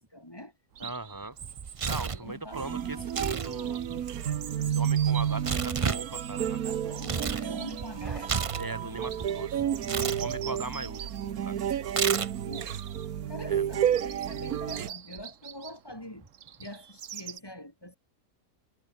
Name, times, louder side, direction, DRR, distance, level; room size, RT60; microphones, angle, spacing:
voice 1, 0.1-0.5 0.8-0.9 2.1-3.0 6.6-8.4 11.0-11.1 12.5-12.8 13.3-16.3 16.6-18.0, left 1 dB, 15° left, 4.0 m, -44 dB
Chirp tweet, 0.7-17.4, right 9 dB, 60° right, 1.3 m, -45 dB
voice 2, 0.8-1.4 1.9-6.9 7.3-7.5 8.6-9.9 10.2-11.6 13.4-13.6, right 2 dB, 15° right, 1.5 m, -40 dB
Tearing, 1.4-2.3 3.0-3.5 3.8-7.5 7.8-9.3 9.8-10.2 11.9-12.5, right 5 dB, 35° right, 0.5 m, -32 dB
sound 1, 2.5-14.9, right 9 dB, 80° right, 1.5 m, -31 dB
omnidirectional pair, 1.5 m